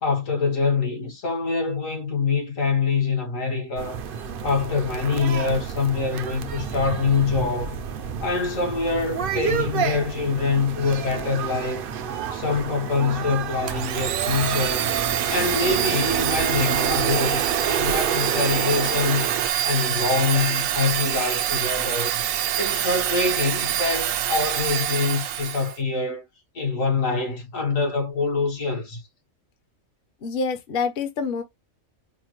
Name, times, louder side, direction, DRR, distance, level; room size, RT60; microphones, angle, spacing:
voice 1, 0.0-4.0 4.4-7.8 8.2-11.9 12.3-14.9 15.3-19.3 19.6-22.2 22.6-26.3 26.6-29.0, left 4 dB, 75° left, 1.8 m, -25 dB
sound 1, 3.8-19.5, right 8 dB, 60° right, 0.6 m, -30 dB
Domestic sounds home sounds, 13.7-25.8, right 10 dB, 85° right, 1.0 m, -25 dB
voice 2, 30.2-31.4, left 5 dB, 50° left, 0.9 m, -26 dB
5.0 x 2.1 x 3.0 m
omnidirectional pair, 1.4 m